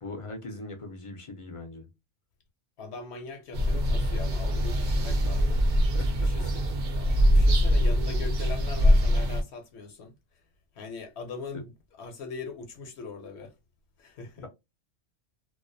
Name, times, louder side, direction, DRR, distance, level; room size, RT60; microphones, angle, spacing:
voice 1, 0.0-1.9 5.9-6.3 11.5-11.6 14.4-14.5, left 2 dB, 50° left, 0.4 m, -40 dB
voice 2, 2.8-5.6 6.1-6.6 7.3-10.1 10.7-11.7 12.0-13.5 14.0-14.5, left 4 dB, 70° left, 0.8 m, -41 dB
sound 1, 3.5-9.4, equal, 60° right, 0.7 m, -23 dB
2.3 x 2.2 x 2.5 m
omnidirectional pair, 1.3 m